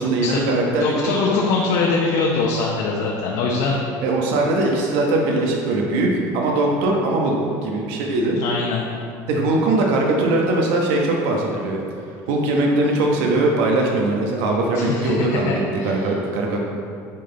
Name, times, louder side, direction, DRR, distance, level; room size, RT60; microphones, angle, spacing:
voice 1, 0.0-1.1 4.0-8.4 9.3-11.8 12.3-16.6, right 2 dB, 75° right, -1 dB, 1.1 m, -20 dB
voice 2, 0.8-3.8 8.4-8.8 14.7-16.1, left 4 dB, 70° left, -3 dB, 0.9 m, -22 dB
9.8 x 3.9 x 3.9 m, 2.4 s
supercardioid pair, 125°, 9 cm